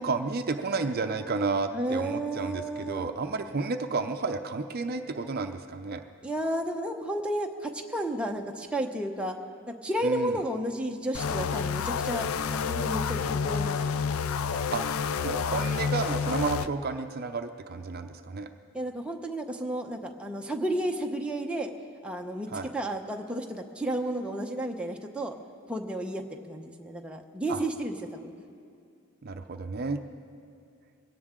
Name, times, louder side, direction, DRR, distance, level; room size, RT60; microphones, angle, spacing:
voice 1, 0.0-6.0 10.0-10.4 14.7-14.8 15.2-18.5 22.5-22.7 27.5-27.6 29.2-30.0, right 4 dB, 45° right, 7 dB, 0.6 m, -31 dB
voice 2, 1.7-3.1 6.2-9.4 9.7-12.3 12.6-14.0 14.5-14.6 18.7-21.7 22.0-25.4 25.7-28.3, right 1 dB, 5° right, 1 dB, 0.8 m, -32 dB
sound 1, 11.1-16.7, left 6 dB, 90° left, 0.4 m, -29 dB
21.5 x 17.0 x 3.7 m, 2.4 s
head